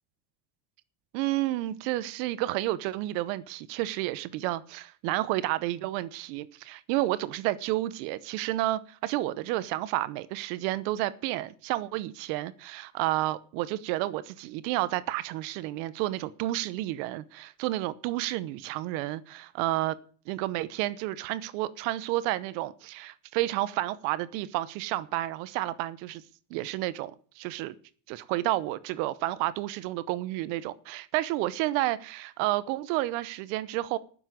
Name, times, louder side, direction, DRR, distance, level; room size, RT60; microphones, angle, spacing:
voice 1, 1.1-20.0 20.3-26.2 26.5-27.7 28.1-34.0, right 16 dB, 85° right, 1.0 m, -31 dB
9.8 x 7.2 x 8.9 m
cardioid pair, 115°, 49 cm